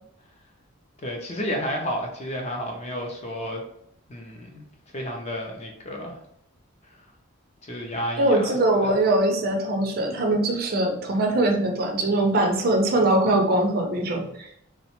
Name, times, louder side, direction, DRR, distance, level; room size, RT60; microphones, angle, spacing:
voice 1, 1.0-3.6 4.1-4.6 4.9-6.2 7.6-8.9, equal, 30° left, 1 dB, 0.4 m, -31 dB
voice 2, 8.2-14.5, right 1 dB, 45° right, 3 dB, 0.4 m, -22 dB
2.8 x 2.1 x 2.9 m, 0.73 s
head